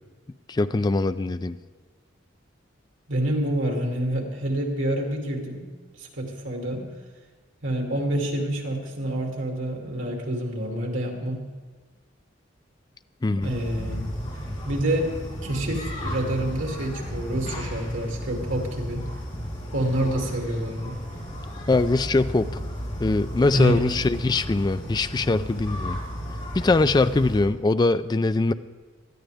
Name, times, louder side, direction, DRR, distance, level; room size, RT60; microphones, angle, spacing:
voice 1, 0.5-1.6 13.2-13.6 21.7-22.6 23.0-26.0 26.5-28.5, left 3 dB, 20° left, 12 dB, 0.3 m, -22 dB
voice 2, 3.1-5.6 6.0-6.8 7.6-11.4 13.3-14.1 14.6-15.1 15.4-19.1 19.7-20.9 23.5-23.9, right 1 dB, 85° right, 1 dB, 2.7 m, -27 dB
sound 1, 13.4-27.4, equal, 35° left, 3.3 m, -34 dB
19.0 x 13.0 x 3.5 m, 1.4 s
head